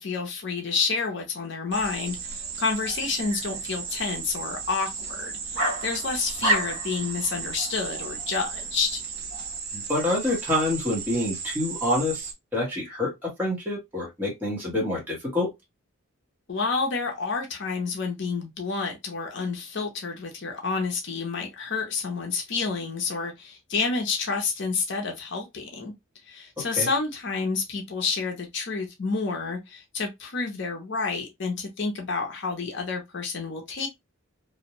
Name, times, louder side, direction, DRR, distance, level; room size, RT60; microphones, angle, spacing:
voice 1, 0.0-9.0 16.5-25.9 26.2-33.9, left 4 dB, 55° left, 0.6 m, -29 dB
sound 1, 1.7-12.3, right 6 dB, 45° right, 0.5 m, -35 dB
sound 2, 1.8-9.6, right 2 dB, 65° right, 1.0 m, -34 dB
voice 2, 9.7-15.5 26.6-26.9, left 1 dB, 10° right, 0.9 m, -27 dB
2.5 x 2.1 x 2.8 m
head